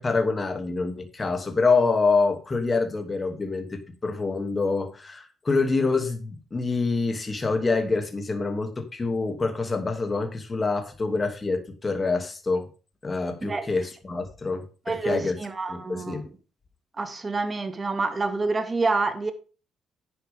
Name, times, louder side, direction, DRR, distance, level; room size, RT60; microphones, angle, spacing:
voice 1, 0.0-12.7 13.0-15.3 15.7-16.3, left 4 dB, 30° left, 2.8 m, -26 dB
voice 2, 14.9-16.2 17.0-19.3, right 3 dB, 30° right, 2.1 m, -27 dB
11.0 x 9.2 x 3.7 m
cardioid pair, 90°, 0 cm